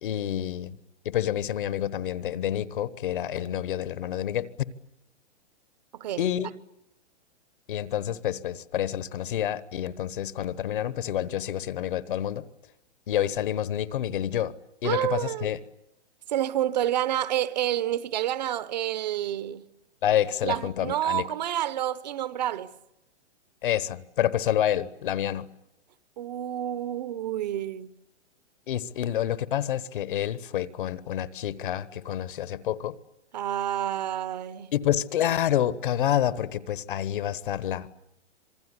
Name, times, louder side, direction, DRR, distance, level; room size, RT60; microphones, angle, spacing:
voice 1, 0.0-0.8 1.0-4.5 6.2-6.5 7.7-12.4 13.1-14.6 14.8-15.6 20.0-21.3 23.6-25.5 28.7-32.9 34.7-37.9, left 11 dB, 50° left, 1.2 m, -28 dB
voice 2, 14.8-15.5 16.3-19.6 20.4-22.7 26.2-27.9 33.3-34.7, right 12 dB, 40° right, 0.9 m, -29 dB
27.0 x 20.5 x 9.7 m
hypercardioid pair, 170°, 34 cm